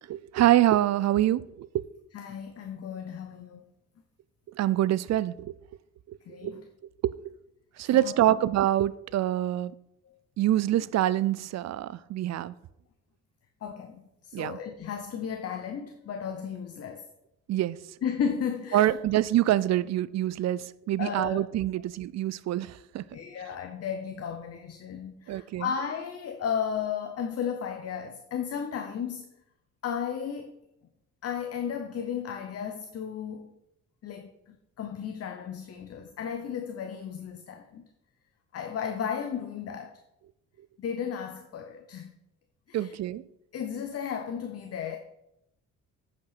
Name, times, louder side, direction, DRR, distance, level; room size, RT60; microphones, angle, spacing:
voice 1, 0.1-1.8 4.6-5.5 6.1-6.2 6.4-6.6 7.0-7.1 7.8-9.7 10.4-12.5 14.3-14.6 17.5-17.8 18.7-23.0 25.3-25.7 42.7-43.2, right 13 dB, 60° right, 0.5 m, -25 dB
voice 2, 2.1-3.7 6.3-6.6 7.9-8.2 10.1-10.2 13.6-17.1 18.0-19.0 21.0-21.4 23.1-29.3 29.8-30.5 31.2-33.6 34.0-37.9 38.5-40.0 40.8-42.2 42.7-43.0 43.5-45.0, left 7 dB, 50° left, 0.8 m, -34 dB
8.5 x 5.3 x 5.8 m
cardioid pair, 90°, 30 cm